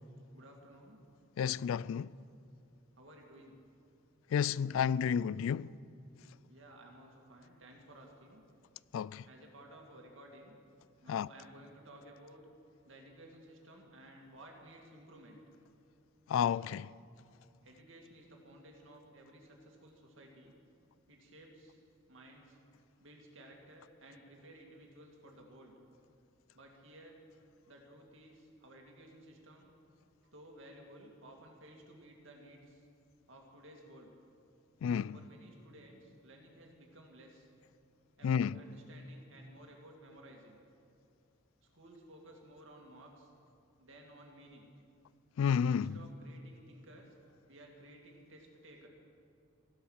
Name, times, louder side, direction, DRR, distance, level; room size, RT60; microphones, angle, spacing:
voice 1, 0.3-1.0 3.0-3.6 6.5-8.4 9.3-10.6 11.0-12.4 12.8-15.4 17.6-20.5 21.1-21.8 22.1-22.6 23.0-25.7 26.5-27.2 27.7-29.7 30.3-32.8 33.3-34.1 35.1-37.5 38.2-40.6 41.7-43.3 43.8-44.7 45.7-47.2 47.5-48.9, right 1 dB, 70° right, 2.4 m, -56 dB
voice 2, 1.4-2.1 4.3-5.7 8.9-9.2 11.1-11.3 16.3-16.9 34.8-35.2 38.2-38.5 45.4-46.0, left 7 dB, 75° left, 0.3 m, -31 dB
15.5 x 11.5 x 6.5 m
head